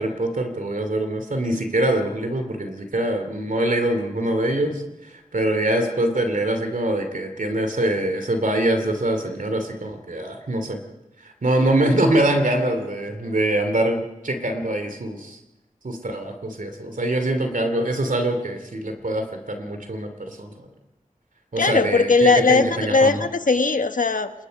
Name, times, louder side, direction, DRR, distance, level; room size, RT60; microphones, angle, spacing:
voice 1, 0.0-10.8 11.2-15.4 15.8-20.5 21.5-23.2, right 1 dB, 70° right, 2.7 m, -24 dB
voice 2, 21.6-24.3, left 4 dB, 70° left, 1.3 m, -19 dB
29.0 x 20.5 x 5.3 m
wide cardioid pair, 55°, 14 cm